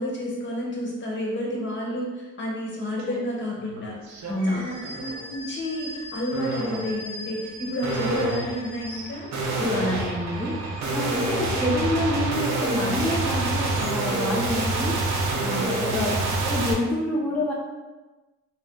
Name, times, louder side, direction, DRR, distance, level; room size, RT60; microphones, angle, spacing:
voice 1, 0.0-9.3 15.9-16.2, equal, 40° left, -3 dB, 1.0 m, -31 dB
sound 1, 3.0-3.2 3.6-4.3 4.8-5.3 6.3-6.9 7.8-16.7, right 2 dB, 65° right, 0.6 m, -27 dB
voice 2, 4.3-4.6 9.6-15.1 15.4-16.2 16.4-17.5, left 1 dB, 5° left, -4 dB, 0.5 m, -27 dB
sound 2, 4.3-9.6 10.1-14.3, equal, 20° right, 1.0 m, -42 dB
2.7 x 2.1 x 3.7 m, 1.2 s
cardioid pair, 90°, 30 cm